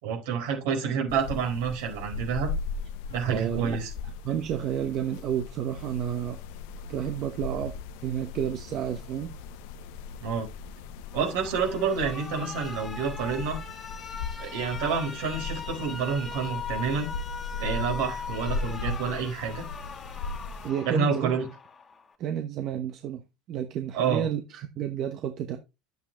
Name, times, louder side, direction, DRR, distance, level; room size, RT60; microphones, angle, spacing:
voice 1, 0.0-2.5 3.1-3.9 10.2-10.5 11.1-13.6 14.4-17.1 17.6-19.6 20.8-21.5 23.9-24.3, right 6 dB, 80° right, 4.4 m, -28 dB
sound 1, 1.1-20.7, left 4 dB, 75° left, 0.9 m, -38 dB
voice 2, 3.3-3.8 4.2-6.4 6.9-7.7 8.0-9.3 20.6-21.3 22.2-23.2 23.5-25.6, right 9 dB, 50° right, 1.1 m, -31 dB
Alarm, 11.1-22.1, left 5 dB, 25° left, 2.1 m, -40 dB
10.0 x 8.1 x 3.1 m
supercardioid pair, 105°, 0 cm